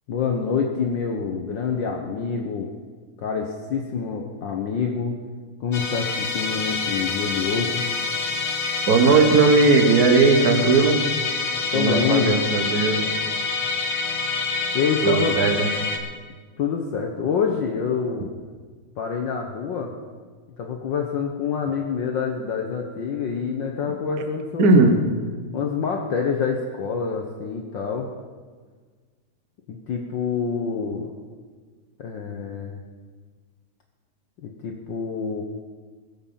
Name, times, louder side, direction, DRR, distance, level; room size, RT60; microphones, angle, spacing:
voice 1, 0.1-2.7 3.2-5.2 5.6-7.9 11.6-12.3 14.7-15.4 16.6-18.3 19.0-19.9 20.6-25.0 25.5-28.1 29.7-31.1 32.0-32.8 34.4-35.4, left 6 dB, 85° left, 2 dB, 1.0 m, -26 dB
Musical instrument, 5.7-16.0, left 4 dB, 50° left, 1.0 m, -26 dB
voice 2, 8.9-11.0 11.7-13.0 15.0-15.7 24.6-25.0, right 3 dB, 50° right, 5 dB, 1.2 m, -17 dB
21.5 x 7.7 x 5.6 m, 1.5 s
omnidirectional pair, 3.4 m